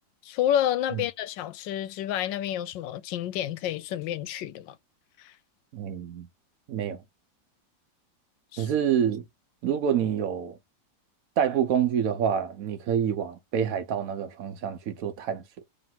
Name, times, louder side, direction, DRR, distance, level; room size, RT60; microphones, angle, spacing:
voice 1, 0.2-4.8 5.2-5.3 8.5-8.7, left 11 dB, 80° left, 1.3 m, -29 dB
voice 2, 5.7-6.3 6.7-7.0 8.6-9.2 9.6-10.6 11.4-15.4, right 8 dB, 65° right, 0.9 m, -27 dB
3.0 x 3.0 x 4.3 m
omnidirectional pair, 2.0 m